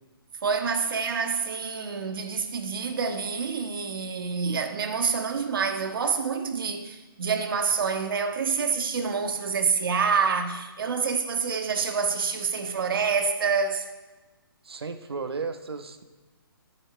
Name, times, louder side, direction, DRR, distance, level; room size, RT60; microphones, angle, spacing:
voice 1, 0.4-13.9, right 5 dB, 65° right, 1.7 m, -27 dB
voice 2, 14.6-16.0, right 4 dB, 85° right, 1.3 m, -34 dB
21.0 x 8.8 x 3.4 m
hypercardioid pair, 150°, 13 cm